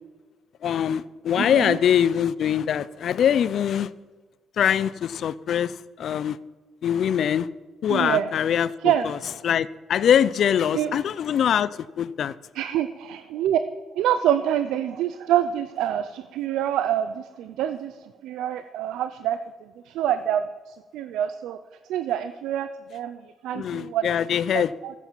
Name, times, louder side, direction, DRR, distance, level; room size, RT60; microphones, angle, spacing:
voice 1, 0.6-3.9 4.6-6.4 6.8-7.5 7.8-9.2 9.4-11.7 12.0-12.3 23.5-24.7, left 9 dB, 65° left, 18 dB, 0.5 m, -23 dB
voice 2, 1.3-1.8 7.9-8.3 8.8-9.3 10.7-11.0 12.5-13.6 13.9-21.6 21.9-24.1 24.5-24.9, right 10 dB, 90° right, 11 dB, 0.6 m, -26 dB
14.5 x 8.3 x 7.5 m, 1.3 s
cardioid pair, 90°, 0 cm